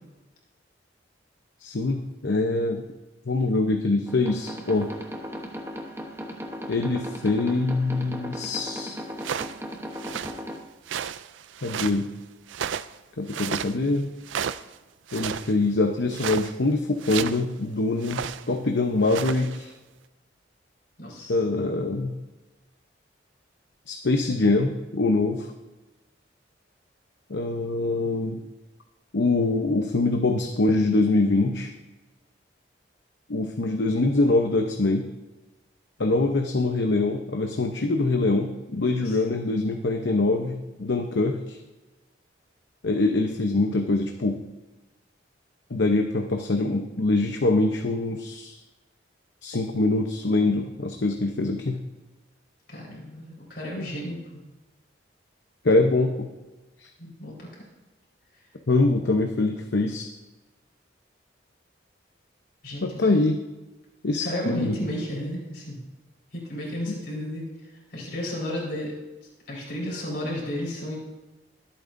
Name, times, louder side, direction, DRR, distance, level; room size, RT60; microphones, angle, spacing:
voice 1, 1.6-2.8 3.2-4.9 6.7-9.0 11.6-12.1 13.2-14.1 15.1-19.7 21.3-22.2 23.9-25.5 27.3-28.4 29.1-31.7 33.3-35.1 36.0-41.6 42.8-44.4 45.7-48.6 49.4-51.8 55.6-56.3 56.8-56.9 58.7-60.1 62.8-63.4 64.0-64.8, left 2 dB, 70° left, 4 dB, 0.8 m, -24 dB
sound 1, 4.1-10.6, equal, 15° right, 0.9 m, -37 dB
sound 2, 9.2-9.6 9.9-10.4 10.9-12.0 12.5-13.0 13.3-13.7 14.2-14.7 15.1-15.5 16.1-16.5 17.0-17.4 18.0-18.4 18.9-19.6, right 8 dB, 80° right, 0.4 m, -32 dB
voice 2, 21.0-21.3 39.0-39.2 52.7-54.4 57.0-57.5 62.6-62.8 64.2-65.8 66.3-67.5 67.9-68.9 69.5-71.0, equal, 55° left, -4 dB, 4.5 m, -32 dB
22.0 x 8.8 x 2.6 m, 1.1 s
head